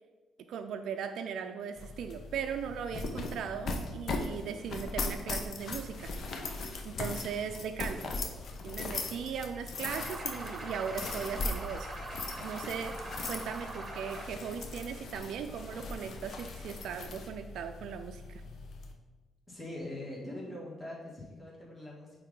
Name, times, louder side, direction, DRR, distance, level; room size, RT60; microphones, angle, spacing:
voice 1, 0.5-6.1 6.5-8.1 8.6-11.9 12.4-18.4, right 7 dB, 75° right, 5 dB, 0.4 m, -38 dB
sound 1, 1.8-18.9, left 3 dB, 60° left, 0.9 m, -39 dB
sound 2, 9.9-14.3, right 2 dB, 30° right, 1.7 m, -42 dB
voice 2, 19.5-22.2, left 1 dB, 10° left, -6 dB, 2.2 m, -42 dB
9.0 x 3.6 x 3.8 m, 1.2 s
cardioid pair, 90°, 0 cm